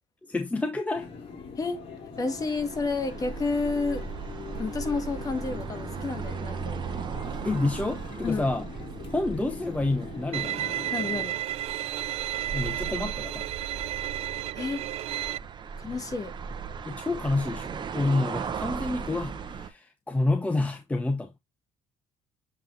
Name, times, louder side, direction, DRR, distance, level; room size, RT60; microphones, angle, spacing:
voice 1, 0.2-1.1 7.4-8.6 9.1-10.7 12.5-13.5 16.8-21.3, left 2 dB, 10° left, 0.7 m, -28 dB
sound 1, 0.9-11.3, left 4 dB, 50° left, 2.7 m, -42 dB
voice 2, 2.2-4.0 4.6-6.9 8.2-8.5 10.9-11.4 14.5-14.8 15.8-16.3, left 4 dB, 30° left, 1.4 m, -30 dB
sound 2, 2.2-19.7, right 6 dB, 40° right, 1.0 m, -38 dB
Bowed string instrument, 10.3-15.4, right 13 dB, 55° right, 0.4 m, -32 dB
7.5 x 3.7 x 3.9 m
cardioid pair, 105°, 12 cm